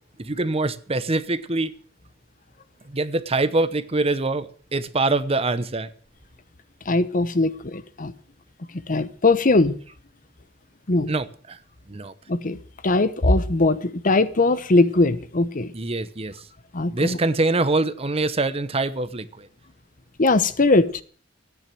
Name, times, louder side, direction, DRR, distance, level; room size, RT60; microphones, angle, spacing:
voice 1, 0.2-1.7 2.8-5.9 11.1-11.6 11.9-12.1 15.7-16.4 16.9-19.5, right 2 dB, 30° right, 0.9 m, -24 dB
voice 2, 6.9-8.1 8.9-9.7 10.9-11.1 12.3-12.6 12.8-15.7 16.7-17.2 20.2-21.0, left 2 dB, 45° left, 0.9 m, -20 dB
14.0 x 9.8 x 7.6 m
head